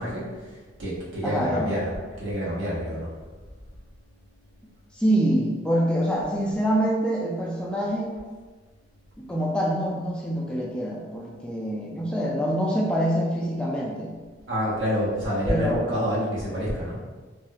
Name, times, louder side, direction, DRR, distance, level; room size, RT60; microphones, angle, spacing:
voice 1, 0.0-1.9 2.2-3.1 14.5-17.0, equal, 90° right, -7 dB, 1.1 m, -28 dB
voice 2, 1.2-1.8 4.9-8.1 9.2-14.2 15.5-15.9, equal, 5° left, -4 dB, 0.3 m, -25 dB
3.1 x 2.3 x 2.8 m, 1.4 s
head